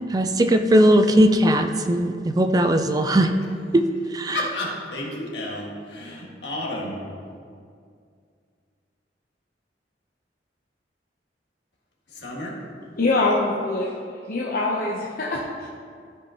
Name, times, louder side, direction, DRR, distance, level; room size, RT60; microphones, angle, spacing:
voice 1, 0.1-3.3 3.7-3.8 4.1-4.5, right 1 dB, 20° right, 7 dB, 0.3 m, -18 dB
voice 2, 4.3-7.0 12.1-12.5, left 1 dB, 75° left, -3 dB, 1.7 m, -31 dB
voice 3, 13.0-13.9 14.2-15.7, left 2 dB, 55° left, -3 dB, 0.7 m, -24 dB
13.5 x 5.3 x 2.9 m, 2.2 s
head